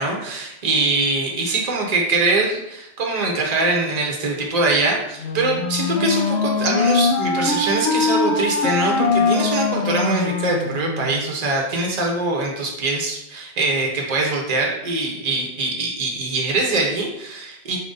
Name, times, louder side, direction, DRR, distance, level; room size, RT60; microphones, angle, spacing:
voice 1, 0.0-17.8, right 2 dB, 40° right, 0 dB, 0.8 m, -23 dB
Wind instrument woodwind instrument, 5.2-11.3, left 4 dB, 75° left, 0.9 m, -22 dB
4.3 x 2.6 x 3.8 m, 0.83 s
omnidirectional pair, 1.1 m